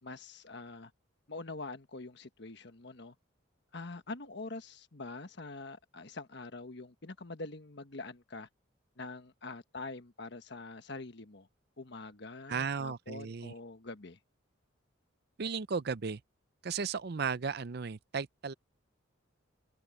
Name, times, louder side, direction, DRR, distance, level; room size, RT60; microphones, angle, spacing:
voice 1, 0.0-0.9 1.3-3.1 3.7-8.5 9.0-11.5 11.8-14.2, left 3 dB, 55° left, 1.4 m, -45 dB
voice 2, 12.5-13.5 15.4-16.2 16.6-18.5, right 5 dB, 50° right, 0.5 m, -35 dB
head